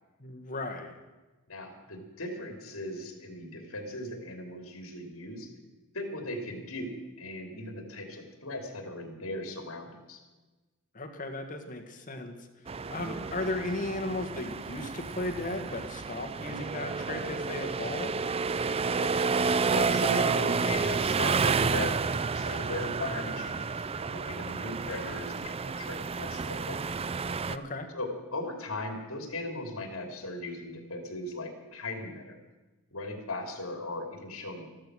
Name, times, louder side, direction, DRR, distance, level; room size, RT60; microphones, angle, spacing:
voice 1, 0.2-0.9 10.9-12.3 12.9-18.1 27.5-27.9, left 2 dB, 40° left, 3 dB, 1.7 m, -35 dB
voice 2, 1.5-5.5 5.9-10.2 12.7-13.0 18.9-19.1 19.7-26.8 27.9-32.4 32.9-34.7, left 2 dB, 70° left, 4 dB, 2.8 m, -38 dB
sound 1, 12.7-27.6, right 5 dB, 25° right, 0.4 m, -30 dB
13.5 x 13.0 x 6.3 m, 1.2 s
head